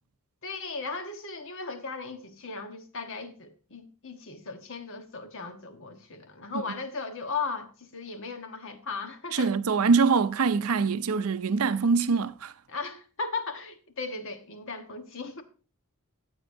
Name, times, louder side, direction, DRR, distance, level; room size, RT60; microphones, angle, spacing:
voice 1, 0.4-9.5 12.7-15.4, left 4 dB, 60° left, 1.2 m, -37 dB
voice 2, 9.3-12.5, right 5 dB, 75° right, 0.6 m, -24 dB
14.5 x 8.0 x 2.6 m
head